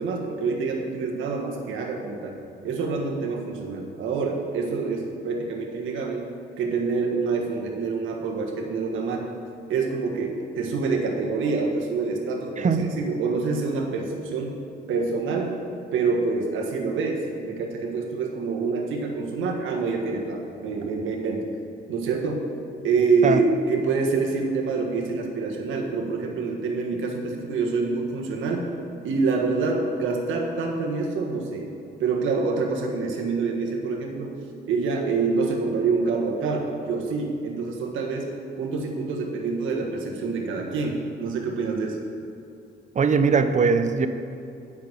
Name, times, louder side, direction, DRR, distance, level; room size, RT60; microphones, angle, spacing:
voice 1, 0.0-2.3 2.6-6.3 6.6-9.3 9.7-14.6 14.9-15.6 15.9-21.5 21.9-22.4 22.8-28.7 29.0-31.6 32.0-34.4 34.7-38.3 38.6-42.0, right 4 dB, 80° right, 0 dB, 1.5 m, -26 dB
voice 2, 42.9-44.1, right 5 dB, 40° right, 9 dB, 0.7 m, -20 dB
8.5 x 6.2 x 7.3 m, 2.6 s
cardioid pair, 90°, 20 cm